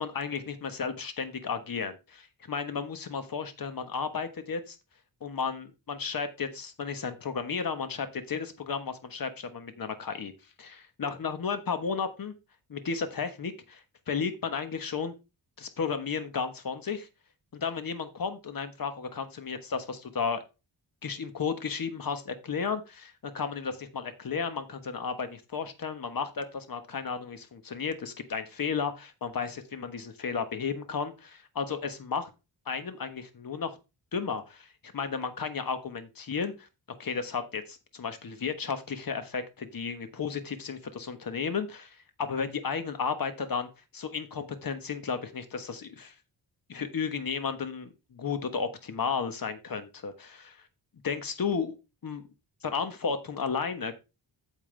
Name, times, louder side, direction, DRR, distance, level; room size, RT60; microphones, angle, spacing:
voice 1, 0.0-4.8 5.2-10.3 10.6-12.3 12.7-15.1 15.6-17.1 17.5-20.4 21.0-32.3 32.7-33.7 34.1-36.7 37.0-46.1 46.7-50.6 51.0-51.8 52.0-52.3 52.6-53.9, left 5 dB, 50° left, 9 dB, 1.3 m, -33 dB
9.0 x 7.2 x 3.3 m, 0.27 s
wide cardioid pair, 155°, 43 cm